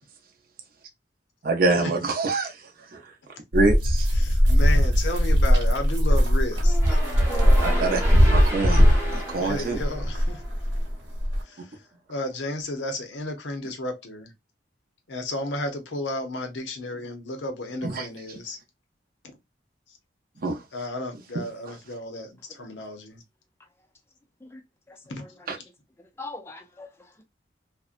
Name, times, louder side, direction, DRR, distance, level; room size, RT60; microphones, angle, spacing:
voice 1, 1.4-2.6 2.9-3.0 3.5-4.1 7.6-8.0 8.3-9.8 17.8-18.1 20.4-20.6 21.3-21.4 25.5-25.6, right 3 dB, 50° right, 0.6 m, -25 dB
sound 1, 3.5-11.4, equal, 70° right, 0.9 m, -20 dB
voice 2, 4.2-6.8 9.4-10.4 11.4-11.7 12.1-14.3 15.1-18.6 20.7-23.2 25.1-25.2, left 1 dB, 75° left, 0.7 m, -33 dB
sound 2, 6.6-10.8, right 1 dB, 15° right, 0.7 m, -33 dB
voice 3, 24.4-25.3 26.0-27.2, left 3 dB, 15° left, 0.4 m, -43 dB
2.6 x 2.1 x 2.4 m
head